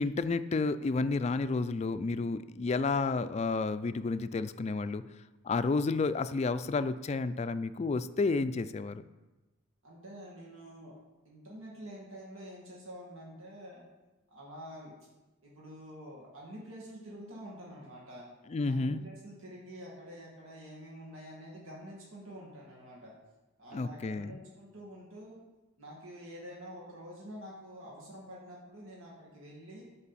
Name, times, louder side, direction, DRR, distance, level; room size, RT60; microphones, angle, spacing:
voice 1, 0.0-5.0 5.4-9.1 18.5-19.0 23.7-24.3, left 3 dB, 30° left, 12 dB, 0.3 m, -31 dB
voice 2, 9.8-11.0 11.2-13.8 14.3-15.0 15.4-18.3 18.7-23.1 23.6-25.4 25.8-29.8, equal, 90° right, -4 dB, 2.1 m, -47 dB
12.5 x 5.3 x 4.2 m, 1.1 s
head